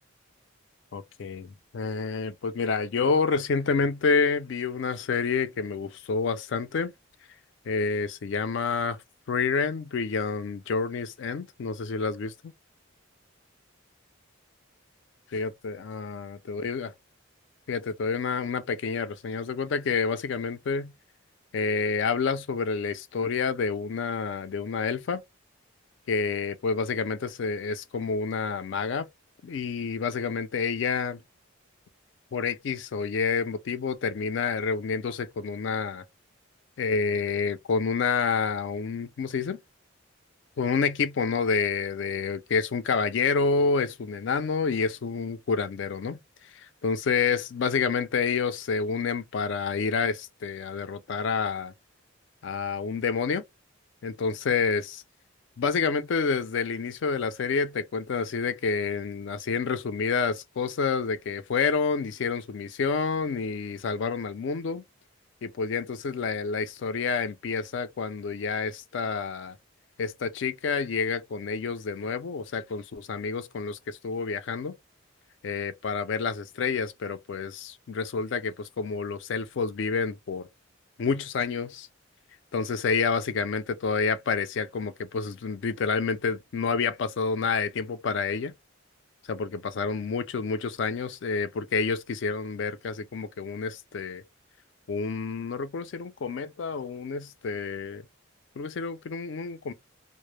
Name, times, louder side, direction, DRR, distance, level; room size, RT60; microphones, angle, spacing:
voice 1, 0.9-6.9 7.7-9.0 9.3-12.3 15.3-16.9 17.7-20.9 21.5-25.2 26.1-29.1 29.4-31.2 32.3-36.0 36.8-39.6 40.6-46.2 46.8-51.7 52.4-53.4 54.0-55.0 55.6-64.8 65.4-69.6 70.0-74.8 75.4-80.5 81.0-81.9 82.5-88.5 89.3-94.2 94.9-98.0 98.6-99.7, left 5 dB, 60° left, 0.3 m, -28 dB
2.0 x 2.0 x 3.0 m
head